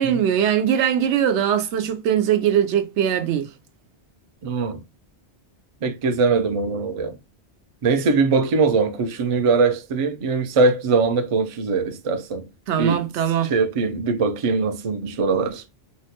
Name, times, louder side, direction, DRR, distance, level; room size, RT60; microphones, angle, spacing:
voice 1, 0.0-3.5 12.7-13.5, right 9 dB, 85° right, 0.9 m, -21 dB
voice 2, 4.4-4.8 5.8-7.2 7.8-12.4 12.8-13.0 13.4-15.7, right 4 dB, 50° right, 0.4 m, -21 dB
3.7 x 2.1 x 2.8 m
omnidirectional pair, 1.2 m